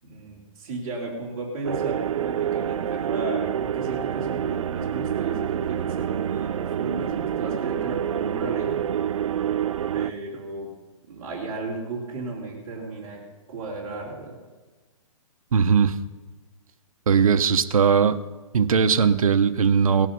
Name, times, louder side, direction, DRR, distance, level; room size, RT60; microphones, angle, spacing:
voice 1, 0.0-8.8 9.9-10.7 11.1-13.2 13.5-14.4, right 2 dB, 35° right, -6 dB, 3.6 m, -34 dB
sound 1, 1.6-10.1, right 9 dB, 65° right, 0.5 m, -27 dB
voice 2, 15.5-15.9 17.1-18.2 18.5-20.1, right 6 dB, 80° right, 10 dB, 1.0 m, -19 dB
18.5 x 11.0 x 5.4 m, 1.3 s
hypercardioid pair, 170°, 18 cm